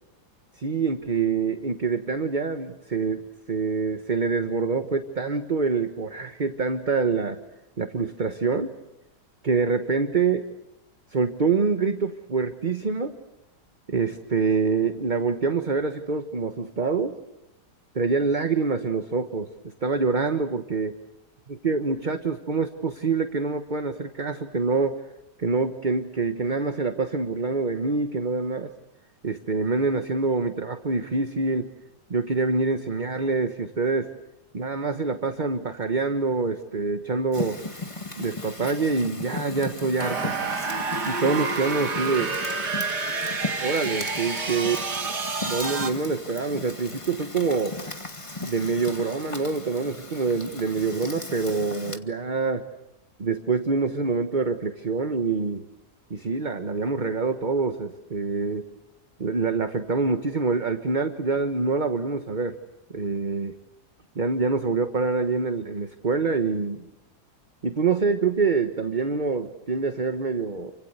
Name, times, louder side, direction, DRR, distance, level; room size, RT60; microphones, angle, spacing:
voice 1, 0.6-3.2 3.5-7.4 7.8-8.7 9.4-10.5 11.1-13.2 13.9-17.2 17.9-20.9 21.5-25.0 25.4-28.7 29.2-31.7 32.1-34.1 34.5-37.6 38.2-40.3 41.0-42.4 43.6-44.8 45.5-47.8 48.4-52.6 53.2-55.6 56.1-58.6 59.2-62.5 62.9-63.5 64.1-66.8 67.6-70.7, right 4 dB, 30° right, 7 dB, 1.3 m, -26 dB
Fire, 37.3-52.0, left 2 dB, 20° left, 1.9 m, -37 dB
sound 1, 40.0-45.9, right 4 dB, 80° right, 2.8 m, -29 dB
29.5 x 25.0 x 8.1 m, 0.89 s
omnidirectional pair, 1.8 m